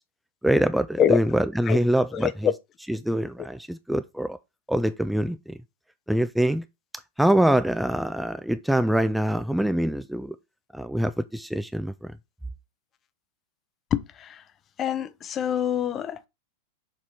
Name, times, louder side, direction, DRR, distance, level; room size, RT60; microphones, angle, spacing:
voice 1, 0.4-2.5 2.9-4.4 4.7-5.6 6.1-6.6 7.2-10.4 10.7-12.1, right 1 dB, ahead, 0.4 m, -24 dB
voice 2, 2.1-2.5 13.9-14.4 14.8-16.3, left 9 dB, 30° left, 0.7 m, -25 dB
6.8 x 4.2 x 4.7 m
figure-of-eight pair, 90°, 0 cm